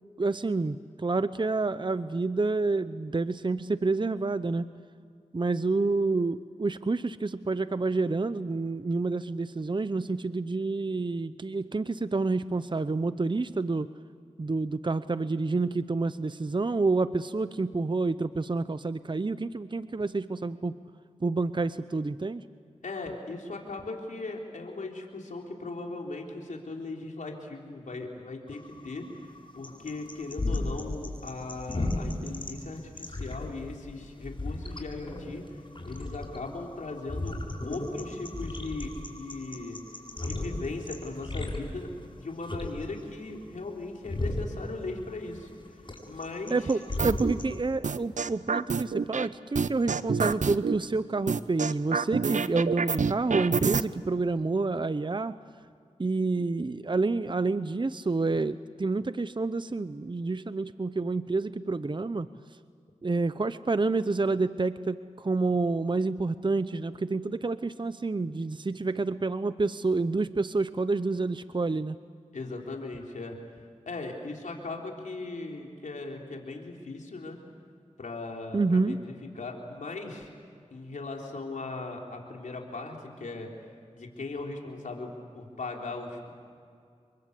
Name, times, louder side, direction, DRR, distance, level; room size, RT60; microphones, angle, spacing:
voice 1, 0.2-4.7 5.3-13.9 14.4-20.8 21.2-22.4 46.5-55.3 56.0-62.3 63.0-72.0 78.5-79.0, right 3 dB, 40° right, 13 dB, 0.8 m, -28 dB
voice 2, 22.8-35.6 35.9-37.4 37.6-39.8 40.2-41.9 42.2-45.5 46.1-46.7 72.3-73.4 73.9-77.4 78.0-80.3 80.7-83.5 83.9-85.1 85.3-86.3, left 3 dB, 85° left, 0 dB, 3.8 m, -38 dB
sound 1, 28.5-47.6, left 2 dB, 40° left, 7.5 m, -36 dB
sound 2, 47.0-47.3 47.8-49.3 49.5-50.8 51.3-53.8, right 5 dB, 75° right, 0.7 m, -27 dB
28.5 x 23.5 x 8.4 m, 2.3 s
cardioid pair, 45°, 13 cm